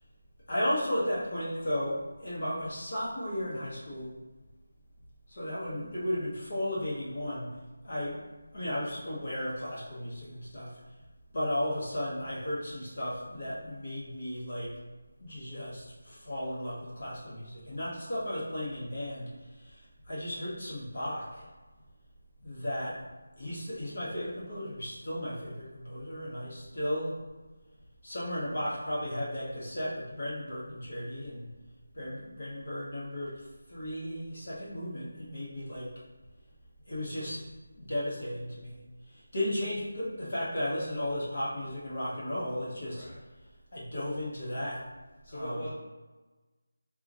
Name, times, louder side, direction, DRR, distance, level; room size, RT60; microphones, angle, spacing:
voice 1, 0.5-4.1 5.3-7.5 7.8-8.2 8.5-10.7 11.3-14.8 15.2-21.5 22.4-23.0 23.4-27.1 28.0-31.5 31.9-35.9 36.9-37.5 37.7-43.1 43.7-44.8 45.3-45.6, left 1 dB, 45° left, -7 dB, 1.2 m, -35 dB
voice 2, 45.2-45.7, equal, 25° left, -10 dB, 0.6 m, -40 dB
2.8 x 2.4 x 3.8 m, 1.2 s
figure-of-eight pair, 175°, 0 cm